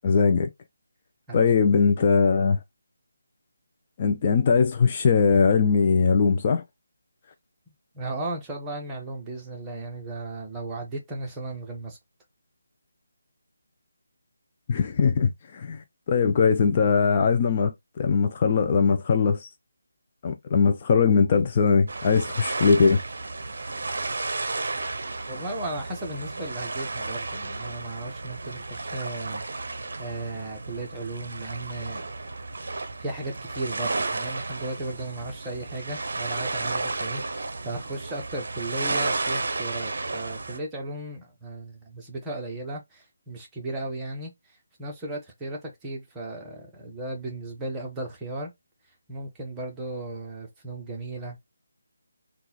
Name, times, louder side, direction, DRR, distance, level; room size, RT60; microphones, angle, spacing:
voice 1, 0.0-0.5 1.3-2.6 4.0-6.6 14.7-19.5 20.2-23.0, left 5 dB, 30° left, 0.4 m, -21 dB
voice 2, 7.9-12.0 25.3-29.7 30.0-32.0 32.7-44.3 44.8-48.5 49.1-51.4, right 2 dB, 10° right, 1.0 m, -35 dB
sound 1, 21.9-40.6, right 3 dB, 60° right, 0.6 m, -33 dB
3.7 x 2.3 x 3.0 m
figure-of-eight pair, 160°, 0 cm